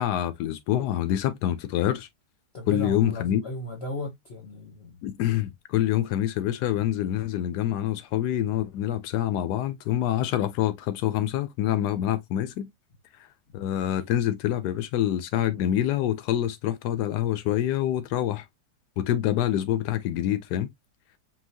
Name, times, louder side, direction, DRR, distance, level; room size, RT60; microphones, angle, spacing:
voice 1, 0.0-2.1 2.7-3.4 5.0-12.7 13.5-18.5 19.0-20.7, left 12 dB, 90° left, 1.2 m, -26 dB
voice 2, 2.5-5.0, left 1 dB, 45° left, 1.0 m, -36 dB
5.6 x 2.7 x 2.7 m
omnidirectional pair, 1.7 m